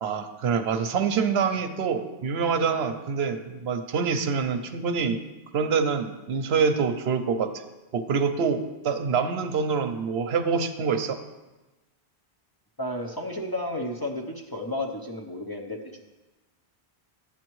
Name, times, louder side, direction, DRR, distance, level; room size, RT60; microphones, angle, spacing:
voice 1, 0.0-5.2 5.5-7.6 7.9-11.2, right 5 dB, 75° right, 8 dB, 0.9 m, -26 dB
voice 2, 12.8-16.0, left 1 dB, 25° left, 0 dB, 0.6 m, -32 dB
11.5 x 8.5 x 3.1 m, 1.1 s
omnidirectional pair, 1.1 m